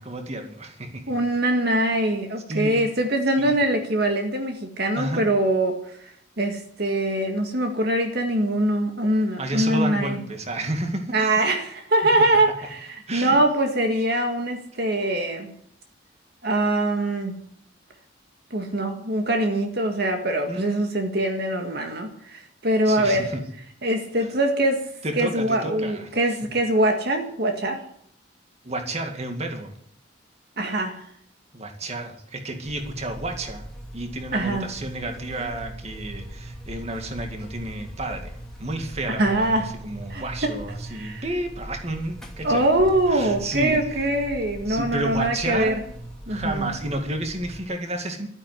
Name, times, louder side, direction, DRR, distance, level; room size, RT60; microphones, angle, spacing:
voice 1, 0.0-1.1 2.5-2.9 3.4-3.5 5.0-5.3 9.4-11.2 13.1-13.4 20.5-20.8 22.9-23.4 24.2-24.3 25.0-26.1 28.6-29.7 31.5-33.6 33.9-38.3 38.6-42.7 43.1-43.8 44.7-45.8 46.3-48.3, right 1 dB, 35° right, 5 dB, 2.2 m, -31 dB
voice 2, 1.1-6.1 6.4-10.2 11.1-15.5 16.4-17.4 18.5-23.3 23.8-24.8 25.1-27.8 30.6-31.0 34.3-34.7 39.2-39.7 40.1-40.5 40.9-41.2 42.4-45.7 46.3-46.7, right 1 dB, 55° right, 4 dB, 1.9 m, -23 dB
Buzz, 32.6-47.6, right 1 dB, 5° left, 2.6 m, -39 dB
12.5 x 10.5 x 9.8 m, 0.67 s
head